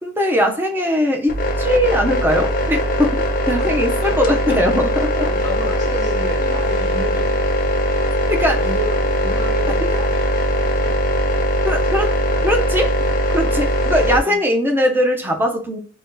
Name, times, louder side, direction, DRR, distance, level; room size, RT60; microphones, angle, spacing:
voice 1, 0.0-3.2 3.5-5.2 8.3-8.6 11.7-12.1 12.4-12.9 13.3-15.8, equal, 10° right, 3 dB, 0.5 m, -20 dB
sound 1, 1.3-14.2, left 1 dB, 50° left, 0.5 m, -20 dB
voice 2, 4.0-4.6 5.2-7.5 8.3-11.0 13.4-13.7 14.2-14.4, right 2 dB, 45° right, -3 dB, 1.1 m, -33 dB
2.7 x 2.2 x 3.6 m, 0.41 s
head